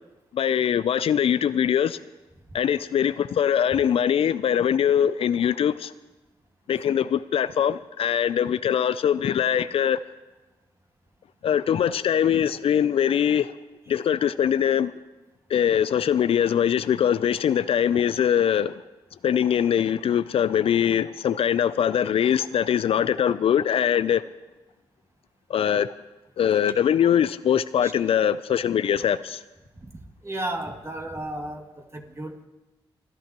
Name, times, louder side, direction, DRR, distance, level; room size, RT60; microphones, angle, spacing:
voice 1, 0.3-2.0 2.5-5.9 6.7-10.0 11.4-13.5 13.9-14.9 15.5-18.7 19.2-24.2 25.5-25.9 26.4-29.4, left 9 dB, 70° left, 0.4 m, -22 dB
voice 2, 30.2-32.5, right 1 dB, 30° right, 2.4 m, -33 dB
29.0 x 11.5 x 3.0 m
supercardioid pair, 50°, 10 cm